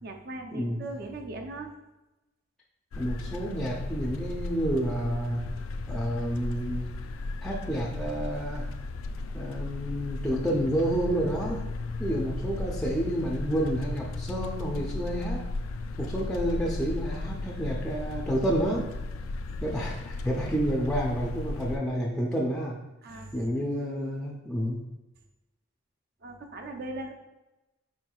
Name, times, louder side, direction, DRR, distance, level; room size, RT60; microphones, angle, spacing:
voice 1, 0.0-1.7 23.0-23.5 26.2-27.1, right 2 dB, 50° right, 3 dB, 0.5 m, -39 dB
sound 1, 2.9-21.8, left 3 dB, 80° left, 0.3 m, -35 dB
voice 2, 3.0-5.4 5.9-6.9 7.4-8.7 9.3-11.6 12.0-15.5 16.0-18.9 19.6-22.8 23.3-24.8, right 1 dB, 5° left, -3 dB, 0.4 m, -29 dB
4.8 x 4.4 x 2.3 m, 1.0 s
head